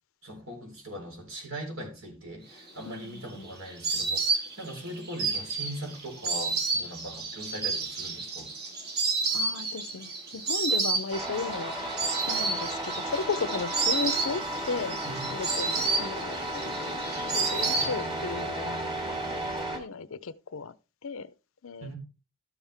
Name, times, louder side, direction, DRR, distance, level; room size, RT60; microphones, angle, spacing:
voice 1, 0.2-8.5 15.0-15.3 17.8-18.0 21.8-22.0, right 1 dB, 75° right, 4.1 m, -40 dB
Insect, 2.7-18.4 18.7-19.5, right 4 dB, 50° right, 2.0 m, -31 dB
voice 2, 2.9-3.5 9.3-11.8 12.3-15.0 15.3-20.7 21.0-21.3 21.6-21.9, left 4 dB, 80° left, 0.6 m, -35 dB
sound 1, 11.1-19.8, right 1 dB, 25° right, 2.7 m, -34 dB
13.0 x 7.3 x 3.4 m
head